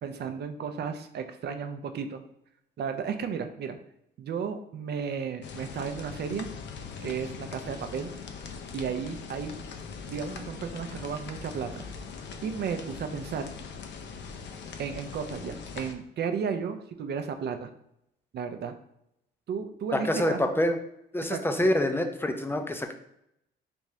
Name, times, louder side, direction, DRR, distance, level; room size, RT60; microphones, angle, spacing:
voice 1, 0.0-2.2 2.8-3.8 4.2-6.5 7.0-8.1 8.7-9.5 10.1-11.8 12.4-13.5 14.8-17.7 18.3-18.7 19.5-20.6 21.2-21.7, right 6 dB, 55° right, 8 dB, 0.5 m, -34 dB
sound 1, 5.4-15.9, left 5 dB, 65° left, 0.5 m, -41 dB
voice 2, 20.1-20.8 21.1-22.9, left 1 dB, 10° left, 6 dB, 0.4 m, -26 dB
3.5 x 2.7 x 3.1 m, 0.78 s
cardioid pair, 90°, 20 cm